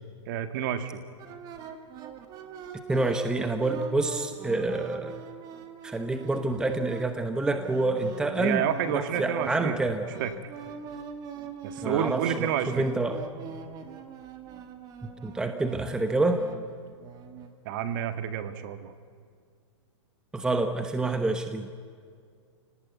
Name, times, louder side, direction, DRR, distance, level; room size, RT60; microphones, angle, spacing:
voice 1, 0.2-1.0 8.4-9.8 10.2-10.3 11.6-12.9 17.6-18.9, right 9 dB, 45° right, 9 dB, 1.8 m, -29 dB
sound 1, 1.2-17.5, right 7 dB, 25° right, 2.0 m, -43 dB
voice 2, 2.9-5.1 5.8-8.7 8.9-10.0 11.8-13.2 15.2-16.4 20.3-21.7, right 2 dB, 5° right, 7 dB, 1.0 m, -27 dB
29.5 x 18.5 x 9.5 m, 2.2 s
hypercardioid pair, 155°, 15 cm